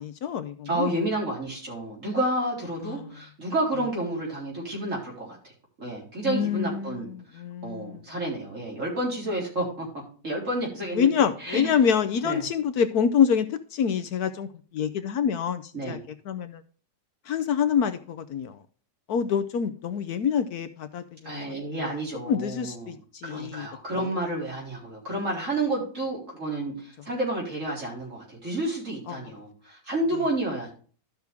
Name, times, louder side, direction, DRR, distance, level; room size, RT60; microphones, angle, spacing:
voice 1, 0.0-0.9 2.8-3.1 6.2-8.0 10.9-14.5 14.7-16.0 16.3-16.6 17.3-18.6 19.1-23.7 24.0-24.1 29.1-29.2, left 7 dB, 70° left, 1.2 m, -26 dB
voice 2, 0.7-5.4 5.8-9.9 10.2-11.7 12.2-12.4 15.7-16.0 21.2-23.0 23.2-30.7, right 1 dB, 45° right, 4.2 m, -30 dB
13.0 x 6.1 x 3.4 m
omnidirectional pair, 1.8 m